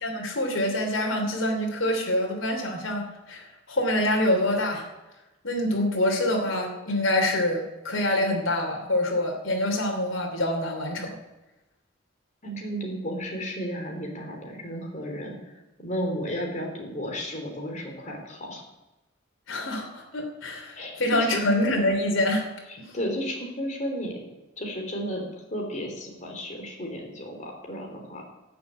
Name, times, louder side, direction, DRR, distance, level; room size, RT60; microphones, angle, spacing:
voice 1, 0.0-4.9 5.4-11.1 19.5-22.5 22.8-22.9, left 1 dB, 85° left, 1 dB, 3.0 m, -26 dB
voice 2, 12.4-15.5 15.8-18.6 20.7-20.9 21.3-21.5 22.9-24.3 24.6-25.2 25.5-28.2, equal, 40° left, 2 dB, 3.6 m, -33 dB
14.0 x 7.0 x 9.5 m, 1.0 s
head